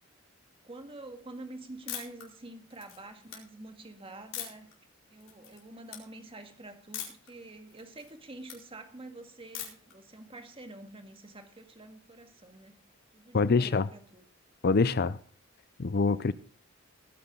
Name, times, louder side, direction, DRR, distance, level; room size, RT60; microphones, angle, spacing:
voice 1, 0.6-4.7 5.1-12.8 13.1-14.2, right 2 dB, 30° right, 2.0 m, -47 dB
sound 1, 1.9-2.2 2.7-3.4 4.3-4.7 5.2-5.6 5.9-6.0 6.9-7.3 7.7-8.6 9.5-9.9, left 10 dB, 85° left, 4.7 m, -40 dB
voice 2, 13.3-13.9 14.6-15.2 15.8-16.3, left 4 dB, 50° left, 0.6 m, -25 dB
19.0 x 9.9 x 3.9 m
head